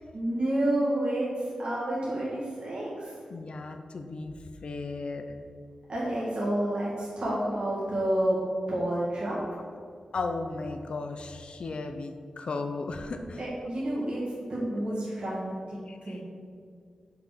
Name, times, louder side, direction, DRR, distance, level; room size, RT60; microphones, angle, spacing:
voice 1, 0.1-3.2 5.9-8.4 8.7-9.4 13.4-16.2, right 1 dB, 50° right, -8 dB, 2.0 m, -29 dB
voice 2, 3.3-4.3 4.6-5.3 10.1-13.4 15.9-16.2, left 3 dB, 60° left, 6 dB, 0.6 m, -35 dB
5.9 x 5.2 x 6.7 m, 2.2 s
wide cardioid pair, 130°, 2 cm